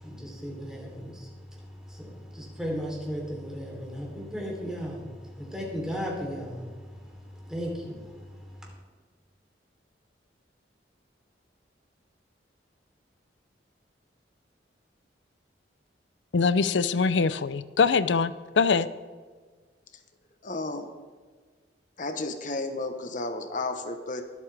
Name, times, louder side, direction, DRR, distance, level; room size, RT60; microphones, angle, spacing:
voice 1, 0.0-8.7, equal, 5° right, -2 dB, 3.3 m, -36 dB
voice 2, 16.3-18.9, left 5 dB, 90° left, 15 dB, 0.6 m, -23 dB
voice 3, 20.4-20.9 22.0-24.2, left 2 dB, 45° left, 7 dB, 1.0 m, -32 dB
23.0 x 8.4 x 3.4 m, 1.5 s
head